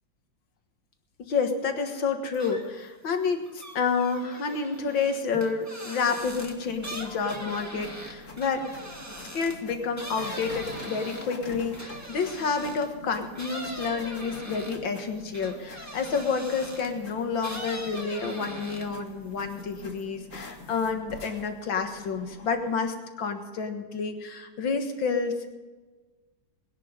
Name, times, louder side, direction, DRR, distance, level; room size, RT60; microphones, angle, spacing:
voice 1, 1.2-8.7 9.3-25.5, left 5 dB, 85° left, 5 dB, 2.3 m, -29 dB
sound 1, 2.3-2.9 3.2-12.9 13.3-17.0 17.4-19.1 19.4-20.0, right 1 dB, 10° right, 1.6 m, -41 dB
sound 2, 6.2-22.8, left 3 dB, 45° left, 2.2 m, -45 dB
20.0 x 11.0 x 5.2 m, 1.3 s
omnidirectional pair, 2.0 m